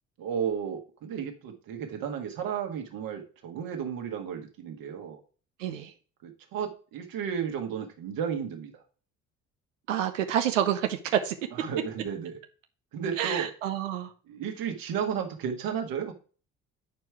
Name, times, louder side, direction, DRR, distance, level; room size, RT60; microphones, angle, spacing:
voice 1, 0.2-5.2 6.2-8.7 11.5-12.4 12.9-13.5 14.3-16.1, right 7 dB, 65° right, 3 dB, 1.7 m, -33 dB
voice 2, 5.6-5.9 9.9-11.3 13.2-14.1, right 10 dB, 85° right, 7 dB, 0.7 m, -28 dB
9.3 x 4.6 x 4.6 m, 0.38 s
hypercardioid pair, 50°, 37 cm